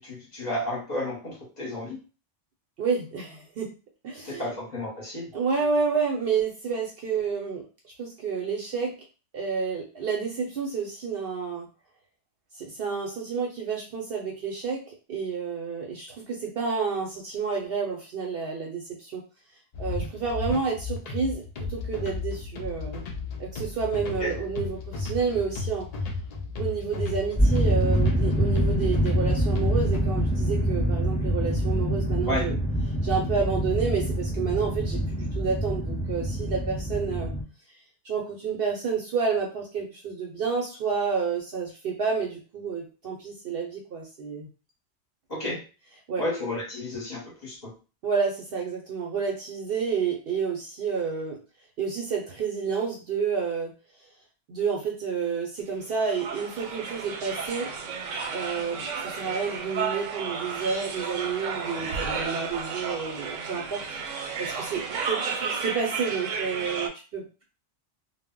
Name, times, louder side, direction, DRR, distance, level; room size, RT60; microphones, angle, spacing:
voice 1, 0.0-2.0 4.2-5.3 24.2-24.3 32.3-32.4 45.3-45.6 46.2-47.6, left 1 dB, 40° left, -2 dB, 0.8 m, -32 dB
voice 2, 2.8-3.7 4.0-4.5 5.3-8.9 9.3-11.7 12.6-19.2 19.8-23.0 23.4-25.9 26.6-32.6 33.0-37.3 38.0-44.5 45.5-45.6 46.1-46.2 48.0-51.4 51.8-53.7 54.5-57.7 58.3-63.8 64.1-67.4, right 5 dB, 60° right, 0 dB, 0.7 m, -30 dB
sound 1, 19.7-30.0, left 3 dB, 75° left, 0.3 m, -34 dB
sound 2, 27.4-37.4, equal, 10° right, 0.4 m, -25 dB
sound 3, 55.9-66.9, right 5 dB, 85° right, 0.9 m, -33 dB
2.1 x 2.0 x 3.5 m, 0.34 s
omnidirectional pair, 1.2 m